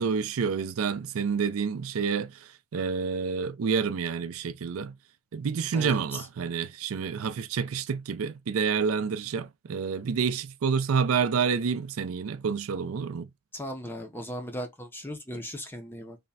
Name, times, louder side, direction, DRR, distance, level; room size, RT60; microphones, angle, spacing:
voice 1, 0.0-4.9 5.3-13.3, right 6 dB, 75° right, 0.4 m, -28 dB
voice 2, 5.7-6.3 13.5-16.2, equal, 10° left, 0.5 m, -37 dB
3.4 x 2.1 x 4.0 m
head